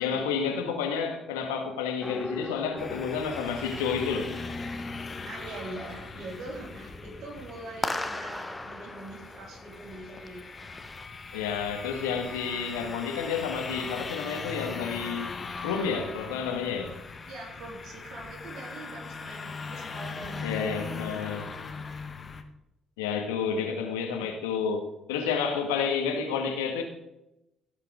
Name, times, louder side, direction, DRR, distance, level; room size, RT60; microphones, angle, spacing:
voice 1, 0.0-4.3 11.3-15.3 15.6-16.9 20.4-21.5 23.0-26.8, left 6 dB, 75° left, 4 dB, 1.6 m, -30 dB
sound 1, 2.0-11.1, left 2 dB, 15° left, 1.2 m, -40 dB
sound 2, 2.8-22.4, left 4 dB, 35° left, 1.4 m, -40 dB
voice 2, 5.3-10.5 11.9-13.0 17.3-20.5 21.2-21.4, right 2 dB, 60° right, -1 dB, 3.6 m, -43 dB
16.5 x 5.9 x 5.1 m, 0.88 s
figure-of-eight pair, 45°, 0 cm